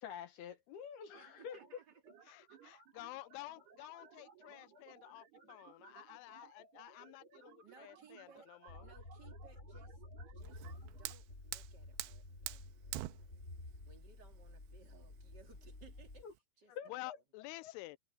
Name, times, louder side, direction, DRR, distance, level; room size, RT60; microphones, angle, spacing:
voice 1, 0.0-1.6 16.2-16.3 16.7-17.2 17.6-17.7, left 8 dB, 65° left, 3.0 m, -47 dB
sound 1, 1.1-11.1, right 6 dB, 60° right, 6.9 m, -61 dB
voice 2, 1.2-2.0 7.6-8.5 8.8-10.0 10.3-10.7 11.0-16.2 16.6-17.1, right 5 dB, 30° right, 2.2 m, -63 dB
voice 3, 2.3-8.9 16.9-18.0, left 20 dB, 85° left, 2.4 m, -51 dB
sound 2, 8.7-16.2, left 2 dB, 20° left, 2.5 m, -52 dB
Fire, 10.4-16.4, right 17 dB, 85° right, 3.0 m, -48 dB
omnidirectional pair, 5.3 m